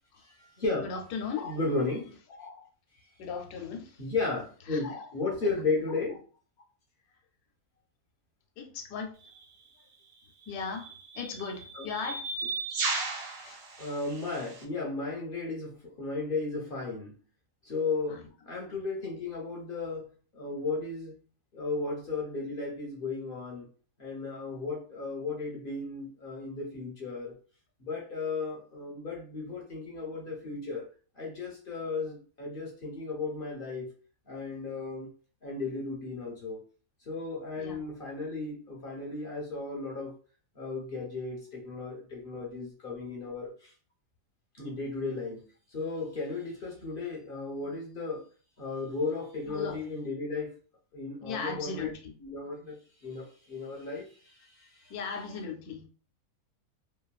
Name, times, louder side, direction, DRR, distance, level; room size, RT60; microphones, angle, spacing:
voice 1, 0.2-0.8 1.4-2.2 4.0-6.2 11.8-11.9 13.8-17.2 17.6-21.2 21.5-23.7 24.0-27.4 27.8-30.8 31.2-33.9 34.3-35.1 35.4-36.6 37.1-40.1 40.6-43.7 44.6-45.4 45.7-48.2 48.6-50.5 50.9-51.9 52.3-52.8 53.0-54.9, left 3 dB, 50° left, 0.7 m, -35 dB
voice 2, 0.8-1.6 2.4-2.7 3.2-4.0 4.7-5.1 5.4-5.6 8.6-9.1 10.5-12.3 13.4-13.6 18.1-18.3 18.7-18.8 37.6-37.9 49.4-49.8 51.2-52.1 54.9-55.9, left 5 dB, 85° left, 1.1 m, -38 dB
sound 1, 9.2-9.4 10.4-14.6, right 4 dB, 65° right, 1.0 m, -36 dB
3.0 x 2.2 x 2.3 m
omnidirectional pair, 1.5 m